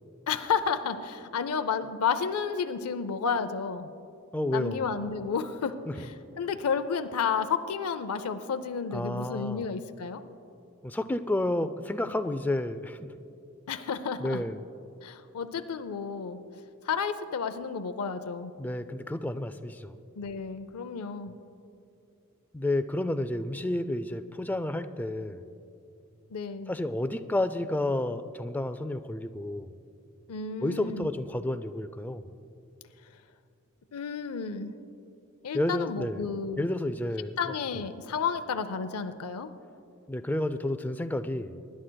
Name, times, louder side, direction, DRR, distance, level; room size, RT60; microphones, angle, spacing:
voice 1, 0.3-3.9 4.5-10.2 13.7-14.4 15.0-16.4 16.8-18.5 20.2-21.3 26.3-26.7 30.3-31.1 33.9-34.7 35.4-36.7 37.4-39.5, left 6 dB, 85° left, 10 dB, 0.5 m, -31 dB
voice 2, 4.3-4.8 5.9-6.1 8.9-9.7 10.8-13.0 14.2-14.6 18.6-20.0 22.5-25.4 26.7-29.7 30.6-32.3 35.5-36.3 36.6-37.4 37.7-37.8 40.1-41.6, left 1 dB, 10° left, 10 dB, 0.3 m, -31 dB
24.0 x 11.0 x 2.2 m, 2.6 s
head